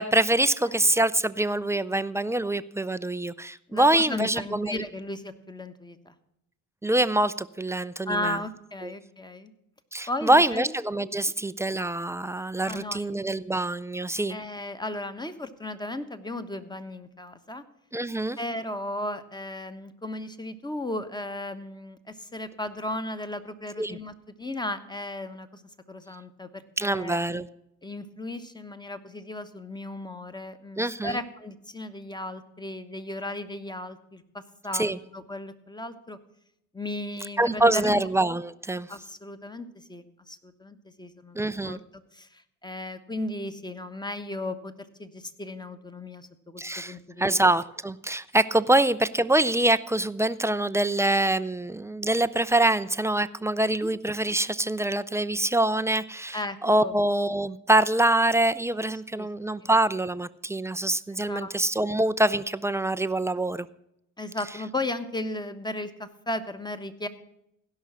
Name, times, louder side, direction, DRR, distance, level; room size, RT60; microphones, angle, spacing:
voice 1, 0.0-4.8 6.8-8.4 8.8-8.9 9.9-14.4 17.9-18.4 23.8-24.0 26.8-27.5 30.8-31.2 34.7-35.0 37.4-38.9 41.3-41.8 46.6-63.7, right 1 dB, 5° right, 14 dB, 0.4 m, -25 dB
voice 2, 3.7-6.1 8.1-9.5 10.1-10.7 12.6-13.0 14.3-17.6 18.4-24.1 24.4-25.6 25.9-27.2 27.8-36.2 36.7-38.1 38.9-41.8 42.1-44.7 45.0-47.4 53.8-53.9 56.3-57.0 59.2-59.3 59.6-59.7 61.2-61.5 64.2-67.1, left 1 dB, 10° left, 10 dB, 1.1 m, -35 dB
16.5 x 5.6 x 6.1 m, 0.81 s
hypercardioid pair, 50°, 41 cm